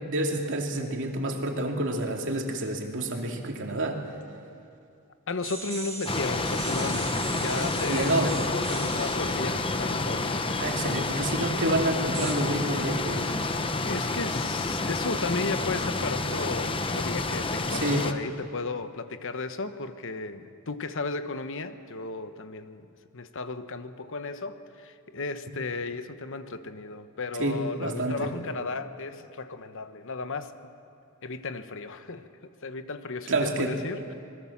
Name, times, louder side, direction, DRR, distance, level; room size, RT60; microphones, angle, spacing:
voice 1, 0.1-4.0 7.9-8.3 10.6-13.3 17.7-18.1 27.4-28.3 33.3-33.7, right 1 dB, 55° right, 2 dB, 2.8 m, -28 dB
voice 2, 5.3-10.4 13.8-22.9 23.1-30.5 31.2-34.2, left 3 dB, 60° left, 10 dB, 1.1 m, -35 dB
sound 1, 5.4-11.1 12.1-12.3, right 5 dB, 30° right, 4.1 m, -40 dB
sound 2, 6.1-18.1, left 3 dB, 25° left, 1.0 m, -29 dB
26.5 x 21.0 x 7.3 m, 2.4 s
head